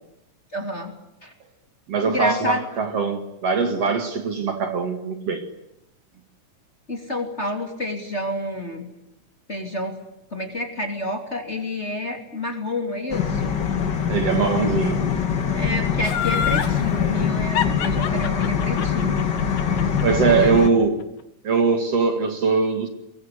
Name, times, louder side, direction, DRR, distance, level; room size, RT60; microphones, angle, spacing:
voice 1, 0.5-0.9 1.2-1.3 2.1-2.6 6.9-8.9 9.5-10.0 10.3-13.6 15.5-19.3 20.3-20.8, left 1 dB, 20° left, 3.0 m, -29 dB
voice 2, 1.9-5.4 14.1-15.0 19.5-19.7 20.0-21.0 21.4-22.9, right 5 dB, 50° right, 3.1 m, -21 dB
sound 1, 13.1-20.7, left 7 dB, 40° left, 2.1 m, -23 dB
Laughter, 16.0-16.8 17.6-20.7 21.0-21.1, left 9 dB, 90° left, 3.4 m, -26 dB
24.5 x 22.0 x 9.8 m
omnidirectional pair, 3.7 m